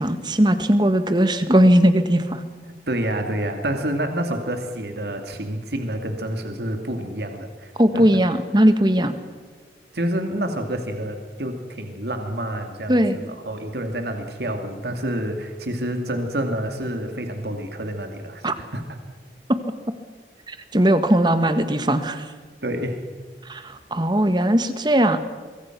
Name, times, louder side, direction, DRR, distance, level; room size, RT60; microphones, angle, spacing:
voice 1, 0.0-2.4 7.8-9.1 12.9-13.2 18.4-18.5 20.5-22.3 23.5-25.2, right 1 dB, 25° right, 10 dB, 1.5 m, -19 dB
voice 2, 2.9-8.0 9.9-18.8 22.6-23.0, right 1 dB, 70° right, 5 dB, 2.4 m, -28 dB
24.0 x 23.5 x 6.0 m, 1.4 s
head